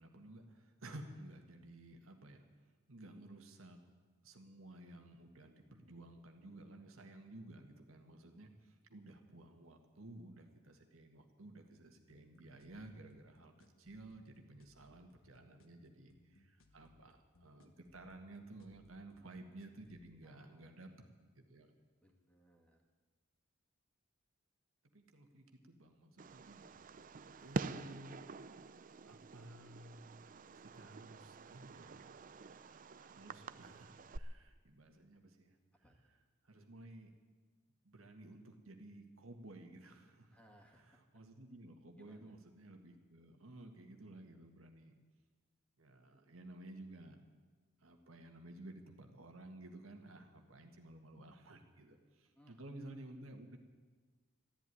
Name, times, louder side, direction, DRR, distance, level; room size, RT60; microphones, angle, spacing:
voice 1, 0.0-2.5 2.9-3.8 4.2-20.9 21.4-21.7 24.9-26.7 27.4-28.3 29.0-35.6 36.4-37.1 37.8-40.4 40.7-44.9 45.8-47.2 47.8-53.6, right 1 dB, 80° right, 4 dB, 1.8 m, -54 dB
sound 1, 12.1-20.1, left 1 dB, 75° left, 1.3 m, -68 dB
voice 2, 20.2-20.8 22.0-22.8 35.8-36.0 40.3-41.0 42.0-42.4 52.3-52.6, equal, 5° left, 0 dB, 2.2 m, -66 dB
Fireworks, 26.2-34.2, right 3 dB, 40° right, 0.5 m, -47 dB
13.5 x 11.0 x 9.8 m, 1.4 s
head